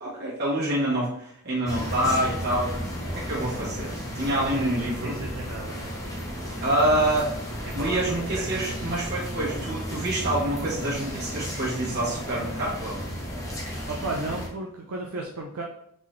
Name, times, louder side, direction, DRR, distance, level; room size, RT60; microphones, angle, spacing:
voice 1, 0.0-2.7 3.1-5.2 6.6-7.3 7.7-13.1, right 1 dB, 50° right, -6 dB, 1.5 m, -27 dB
sound 1, 1.7-14.5, equal, 15° left, 0.8 m, -34 dB
voice 2, 4.3-5.9 7.6-8.9 13.9-15.6, right 2 dB, 75° right, 0 dB, 0.5 m, -35 dB
3.8 x 3.7 x 3.2 m, 0.73 s
head